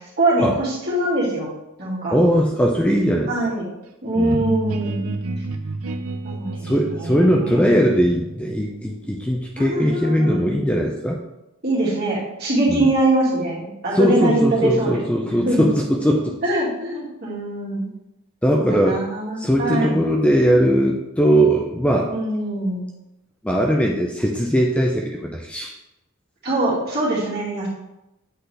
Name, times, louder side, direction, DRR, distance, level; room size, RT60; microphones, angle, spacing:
voice 1, 0.0-1.5 1.8-2.2 3.3-3.6 4.0-5.1 6.2-7.6 9.6-10.5 11.6-15.7 16.4-17.8 18.5-20.0 22.1-22.9 26.4-27.7, right 1 dB, 50° right, -7 dB, 2.3 m, -23 dB
voice 2, 2.1-3.3 4.2-4.5 6.6-11.2 12.7-12.9 13.9-16.4 18.4-19.0 19.4-22.1 23.4-25.7, equal, 5° left, 0 dB, 0.4 m, -19 dB
sound 1, 4.3-9.9, right 2 dB, 85° right, 0.6 m, -31 dB
7.9 x 3.9 x 3.3 m, 0.93 s
head